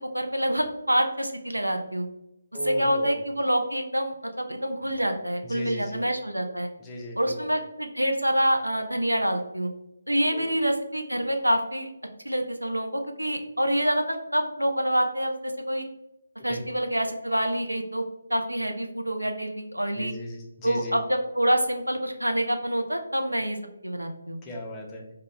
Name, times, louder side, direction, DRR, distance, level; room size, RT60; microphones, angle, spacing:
voice 1, 0.1-2.1 2.6-6.7 7.2-9.7 10.1-11.9 12.2-15.9 16.4-18.0 18.3-20.1 20.6-23.6 23.8-24.4, equal, 85° right, 4 dB, 0.4 m, -26 dB
voice 2, 2.5-3.2 5.4-6.0 6.8-7.5 10.3-10.5 16.5-16.6 19.9-21.0 24.4-25.0, equal, 15° left, -2 dB, 0.4 m, -37 dB
2.2 x 2.1 x 2.8 m, 0.89 s
figure-of-eight pair, 145°, 0 cm